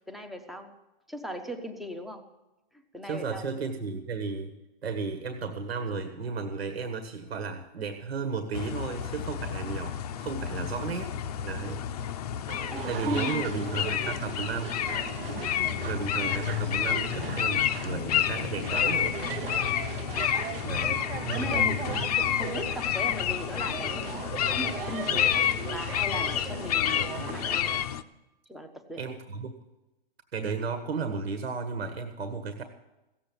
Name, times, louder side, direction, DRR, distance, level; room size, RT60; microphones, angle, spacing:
voice 1, 0.1-0.7 1.1-2.3 2.9-3.6 10.5-10.7 11.5-11.6 12.7-13.7 14.0-14.4 15.8-16.0 20.8-21.0 21.3-22.1 22.4-24.2 24.5-25.4 25.7-27.7 28.5-29.0, equal, ahead, 5 dB, 0.6 m, -38 dB
voice 2, 3.0-4.5 4.8-11.2 11.4-12.1 12.8-14.8 15.8-19.1 20.6-22.0 29.0-29.5 30.3-32.6, right 4 dB, 85° right, 7 dB, 1.6 m, -34 dB
sound 1, 8.5-28.0, left 10 dB, 40° left, 0.6 m, -30 dB
sound 2, 12.5-27.8, right 9 dB, 65° right, 0.9 m, -39 dB
16.5 x 7.7 x 8.6 m, 1.0 s
hypercardioid pair, 155°, 30 cm